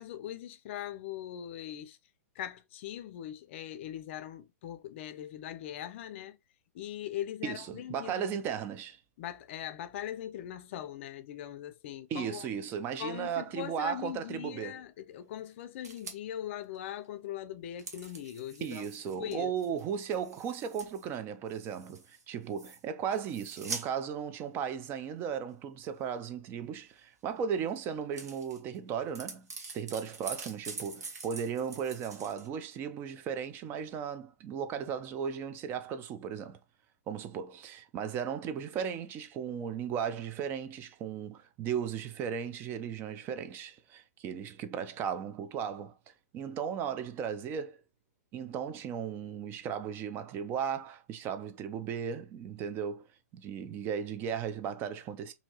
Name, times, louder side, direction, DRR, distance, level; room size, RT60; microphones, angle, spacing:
voice 1, 0.0-2.0 2.3-6.4 6.7-8.2 9.2-12.5 13.0-19.5, left 11 dB, 50° left, 0.5 m, -41 dB
voice 2, 7.4-9.0 12.1-14.8 18.6-29.5 29.7-36.6 37.1-45.9 46.3-47.8 48.3-53.0 53.3-55.3, right 7 dB, 25° right, 0.4 m, -36 dB
sound 1, 15.8-16.2 16.7-16.8 17.0-17.1 17.8-21.2 21.5-22.2 22.5-22.8 23.1-23.9 24.7-24.8 27.7-27.8 28.0-28.8 29.1-32.5, right 4 dB, 85° right, 1.0 m, -45 dB
2.8 x 2.7 x 2.8 m
hypercardioid pair, 135°, 9 cm